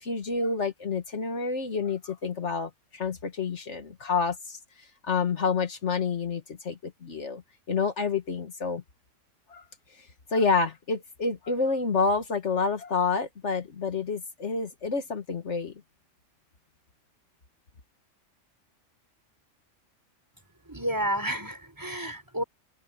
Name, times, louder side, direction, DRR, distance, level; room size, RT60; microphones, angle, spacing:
voice 1, 0.0-4.6 5.0-7.4 7.7-8.8 9.5-9.6 10.3-15.7, left 4 dB, 70° left, 1.9 m, -28 dB
voice 2, 20.7-22.4, equal, 15° right, 4.4 m, -30 dB
open air
omnidirectional pair, 1.3 m